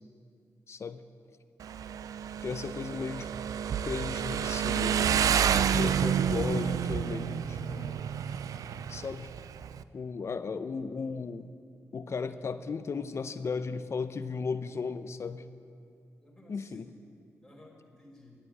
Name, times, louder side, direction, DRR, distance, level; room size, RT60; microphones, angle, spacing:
voice 1, 0.7-1.0 2.4-3.3 3.8-8.0 8.9-9.3 9.9-11.5 11.9-15.4 16.5-16.9, left 5 dB, 50° left, 11 dB, 0.7 m, -36 dB
Motorcycle, 1.6-9.8, right 8 dB, 80° right, 0.4 m, -29 dB
voice 2, 2.7-3.4 16.2-17.1 17.4-18.4, left 1 dB, 10° left, -2 dB, 4.7 m, -56 dB
13.0 x 9.1 x 10.0 m, 2.3 s
cardioid pair, 80°, 6 cm